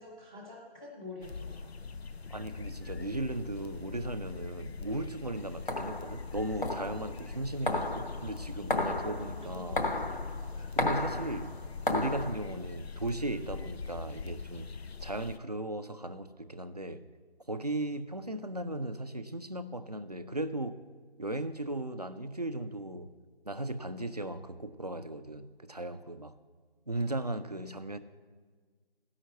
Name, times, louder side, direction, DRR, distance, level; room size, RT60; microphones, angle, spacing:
voice 1, 0.0-1.7 9.0-9.9 10.6-10.7, left 2 dB, 10° left, 0.9 m, -47 dB
sound 1, 1.2-15.4, left 5 dB, 90° left, 0.5 m, -43 dB
voice 2, 2.3-9.8 10.8-11.5 11.9-14.7 15.0-17.1 17.5-20.9 21.2-23.2 23.4-26.4 26.9-28.0, right 1 dB, 40° right, 0.5 m, -37 dB
sound 2, 5.4-12.3, left 2 dB, 55° left, 1.0 m, -34 dB
13.0 x 5.6 x 7.9 m
figure-of-eight pair, 165°, 31 cm